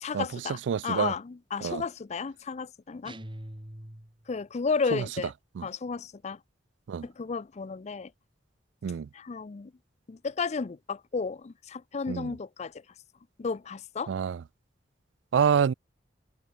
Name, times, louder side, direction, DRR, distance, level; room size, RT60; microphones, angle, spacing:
voice 1, 0.0-3.2 4.3-5.3 5.6-6.4 7.0-8.1 9.1-9.7 10.1-12.7 13.4-14.1, left 5 dB, 40° left, 0.4 m, -33 dB
voice 2, 0.7-1.1 1.6-1.8 4.9-5.0 5.6-5.7 6.9-7.1 8.8-9.1 12.1-12.3 14.1-14.4 15.3-15.7, right 7 dB, 80° right, 0.3 m, -26 dB
sound 1, 3.0-4.4, right 1 dB, 30° right, 2.5 m, -43 dB
head